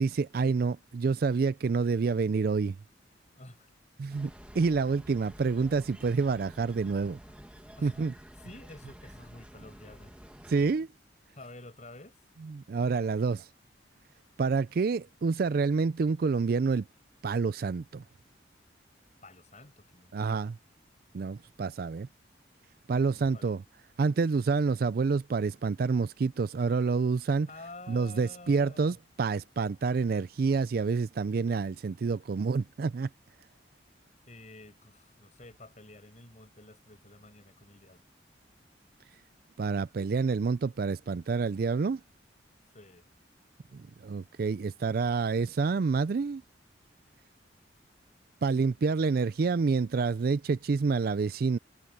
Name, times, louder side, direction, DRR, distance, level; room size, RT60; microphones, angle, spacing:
voice 1, 0.0-2.8 4.0-7.2 7.8-8.1 10.5-10.9 12.4-13.5 14.4-16.8 17.2-18.0 20.1-20.5 21.1-22.1 22.9-23.6 24.0-27.5 27.9-33.1 39.6-42.0 43.7-46.4 48.4-51.6, right 4 dB, 50° right, 0.4 m, -28 dB
voice 2, 3.4-3.7 7.8-10.1 11.3-12.2 19.2-20.5 23.1-23.5 27.5-29.0 34.3-38.0 42.7-43.1, left 2 dB, 40° left, 6.4 m, -50 dB
sound 1, 4.1-10.9, equal, 5° right, 1.6 m, -50 dB
head